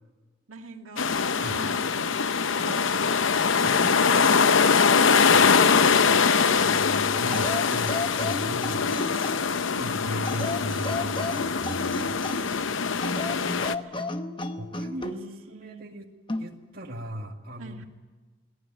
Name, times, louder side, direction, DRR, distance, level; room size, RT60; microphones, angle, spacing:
voice 1, 0.5-1.1 1.5-6.7 8.4-9.6 12.4-14.2 15.0-15.8 17.6-17.9, right 2 dB, 90° right, 3 dB, 2.3 m, -45 dB
sound 1, 1.0-13.7, left 5 dB, 80° left, 0.8 m, -23 dB
voice 2, 3.6-4.4 7.2-8.9 9.8-12.2 14.6-15.2 15.5-16.1 16.4-17.9, equal, 45° right, 1 dB, 2.2 m, -37 dB
sound 2, 6.6-8.2 9.8-11.2, left 2 dB, 55° left, 1.4 m, -45 dB
sound 3, 7.3-9.6 10.2-12.6 13.0-15.2 16.3-16.5, left 2 dB, 25° left, 1.0 m, -33 dB
22.5 x 18.5 x 9.0 m, 1.4 s
head